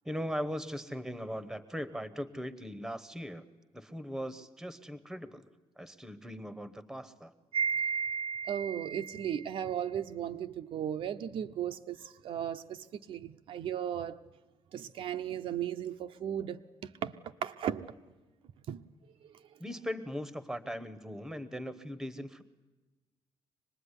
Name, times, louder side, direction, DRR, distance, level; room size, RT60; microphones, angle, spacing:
voice 1, 0.0-3.4 3.7-5.5 5.8-7.3 19.6-22.4, equal, 5° right, 1.0 m, -39 dB
voice 2, 7.5-14.2 14.7-17.2 17.4-17.9 18.7-18.8, right 9 dB, 60° right, 0.8 m, -35 dB
25.0 x 20.0 x 9.9 m
cardioid pair, 175°, 10 cm